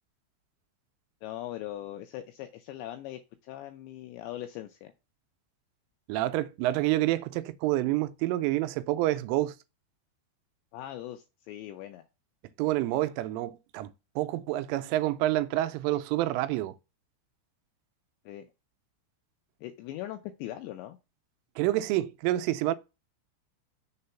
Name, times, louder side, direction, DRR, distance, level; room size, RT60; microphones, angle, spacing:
voice 1, 1.2-4.9 10.7-12.0 18.3-18.5 19.6-21.0, left 13 dB, 80° left, 2.6 m, -40 dB
voice 2, 6.1-9.6 12.6-13.9 14.2-16.7 21.6-22.7, right 15 dB, 85° right, 3.1 m, -28 dB
6.8 x 3.9 x 5.5 m
omnidirectional pair, 5.7 m